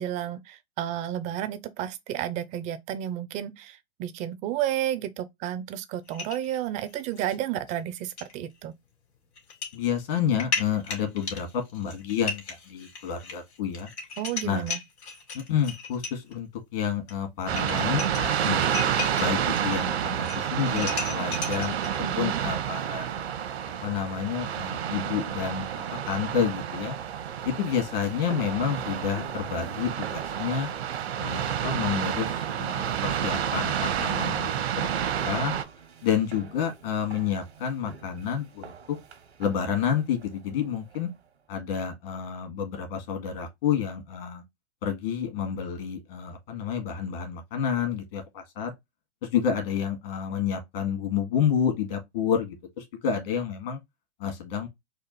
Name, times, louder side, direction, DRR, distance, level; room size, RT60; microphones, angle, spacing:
voice 1, 0.0-8.7 14.2-14.8 22.0-22.4, right 11 dB, 25° right, 0.5 m, -32 dB
sound 1, 6.1-7.4 7.7-7.8 8.2-8.3 9.4-9.8 10.1-16.3 17.1-17.2 17.4-19.8 20.1-22.0, left 4 dB, 80° left, 2.2 m, -36 dB
voice 2, 9.7-13.9 14.4-14.6 15.3-21.7 22.2-23.1 23.8-25.7 26.1-26.9 27.4-30.7 31.2-34.5 34.8-34.9 35.2-35.5 36.0-38.7 39.4-41.1 41.5-44.4 44.8-48.7 49.2-53.8 54.2-54.7, left 8 dB, 60° left, 2.0 m, -29 dB
sound 2, 17.5-35.6, right 9 dB, 70° right, 0.9 m, -29 dB
sound 3, 27.4-41.3, right 5 dB, 90° right, 1.3 m, -47 dB
4.3 x 2.4 x 3.9 m
hypercardioid pair, 130°, 32 cm